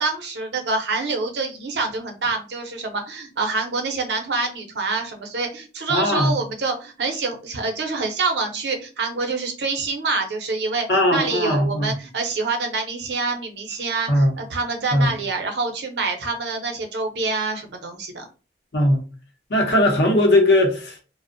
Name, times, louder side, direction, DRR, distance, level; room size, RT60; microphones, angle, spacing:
voice 1, 0.0-18.3, right 3 dB, 80° right, 0.6 m, -26 dB
voice 2, 5.9-6.4 10.9-11.9 14.1-14.3 14.9-15.1 18.7-19.0 19.5-21.0, left 1 dB, 75° left, 0.7 m, -19 dB
2.5 x 2.0 x 2.5 m
head